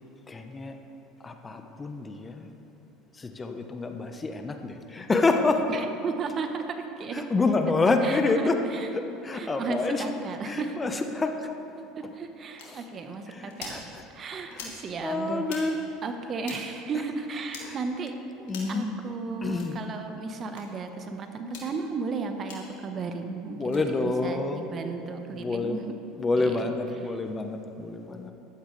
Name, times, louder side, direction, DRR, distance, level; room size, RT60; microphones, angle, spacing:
voice 1, 0.3-0.8 1.2-2.5 3.1-5.7 7.1-8.6 8.9-10.1 10.4-11.5 12.0-12.1 12.6-12.8 13.3-14.0 14.5-14.7 15.0-15.8 16.1-16.2 16.9-17.0 17.6-17.8 18.4-18.9 19.4-19.8 23.5-24.7 25.1-25.8 26.2-28.3, left 3 dB, 20° left, 6 dB, 0.9 m, -28 dB
voice 2, 5.7-7.3 8.0-8.9 9.3-10.8 11.9-13.8 14.1-15.7 16.0-18.1 18.7-26.0 26.4-26.7, right 4 dB, 40° right, 6 dB, 1.1 m, -34 dB
sound 1, 12.6-12.7 13.5-13.8 14.5-14.8 15.4-15.6 16.4-16.6 17.5-17.7 18.5-18.8 19.5-19.7 20.5-20.6 21.4-21.7 22.5-22.6 23.6-23.8, left 5 dB, 80° left, 2.4 m, -42 dB
14.5 x 12.0 x 3.3 m, 2.8 s
hypercardioid pair, 85°, 0 cm